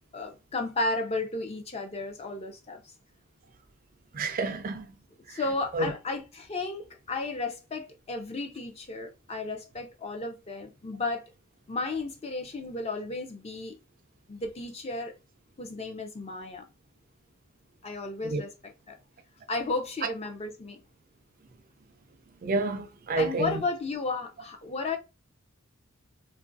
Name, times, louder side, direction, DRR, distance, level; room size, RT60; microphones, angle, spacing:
voice 1, 0.1-2.9 5.3-11.2 11.7-13.8 14.3-15.1 15.6-16.7 17.8-19.0 19.5-20.8 23.1-25.0, left 3 dB, 30° left, 0.4 m, -33 dB
voice 2, 4.1-4.9 5.3-5.4 5.7-5.9 18.2-18.4 22.4-23.5, right 3 dB, 40° right, 0.3 m, -29 dB
3.0 x 2.4 x 2.5 m
head